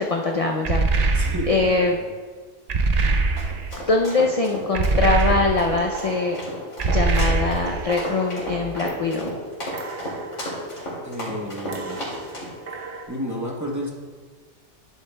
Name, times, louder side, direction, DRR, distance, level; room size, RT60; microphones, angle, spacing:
voice 1, 0.0-1.2 1.5-2.0 3.9-6.4 6.9-9.3, left 3 dB, 50° left, 1 dB, 0.4 m, -23 dB
sound 1, 0.6-1.7 2.7-3.8 4.7-5.8 6.8-7.9, right 3 dB, 55° right, 0.4 m, -22 dB
voice 2, 1.1-2.1 11.0-12.3 13.1-13.9, equal, 15° right, -2 dB, 0.8 m, -32 dB
sound 2, 3.1-12.5, equal, 75° left, 2.7 m, -33 dB
sound 3, 5.6-9.4 9.7-11.2 11.7-13.1, right 3 dB, 70° right, 1.2 m, -39 dB
10.5 x 8.0 x 2.2 m, 1.5 s
omnidirectional pair, 1.3 m